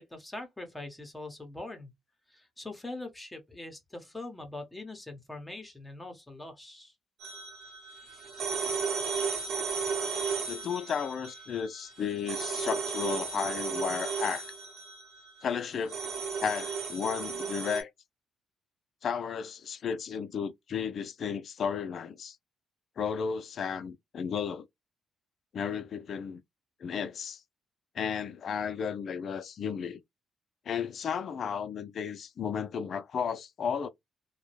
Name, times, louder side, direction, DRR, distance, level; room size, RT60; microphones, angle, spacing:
voice 1, 0.0-1.9 2.3-6.9, left 2 dB, 15° left, 0.9 m, -42 dB
sound 1, 7.2-17.8, right 5 dB, 65° right, 1.0 m, -35 dB
voice 2, 10.5-14.5 15.4-16.0 16.4-17.9 19.0-22.4 23.0-24.7 25.5-26.4 26.8-27.4 27.9-30.0 30.7-33.9, left 7 dB, 55° left, 0.4 m, -33 dB
2.3 x 2.0 x 3.1 m
cardioid pair, 90°, 0 cm